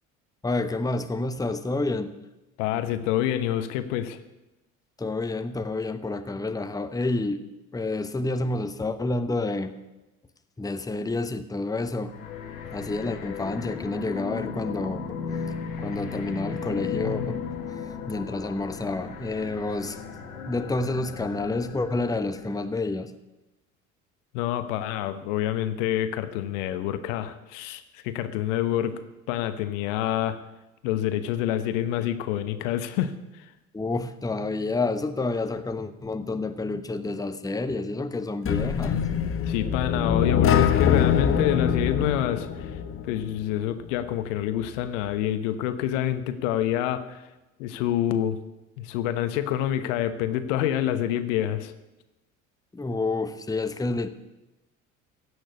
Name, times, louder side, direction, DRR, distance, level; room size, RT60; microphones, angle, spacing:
voice 1, 0.4-2.1 5.0-7.4 7.7-9.7 10.6-12.1 12.7-15.2 15.8-17.4 17.7-17.8 18.1-20.0 20.5-23.1 33.7-39.0 52.7-54.1, left 2 dB, 10° left, 10 dB, 1.0 m, -29 dB
voice 2, 2.6-4.2 24.3-29.0 29.3-30.4 30.8-33.1 39.5-42.7 43.1-47.2 47.6-48.4 48.8-51.7, left 11 dB, 65° left, 12 dB, 1.1 m, -27 dB
sound 1, 12.1-22.7, left 6 dB, 80° left, 1.6 m, -35 dB
sound 2, 38.5-43.4, left 8 dB, 30° left, 1.2 m, -23 dB
16.5 x 6.5 x 9.6 m, 1.0 s
figure-of-eight pair, 60°, 41 cm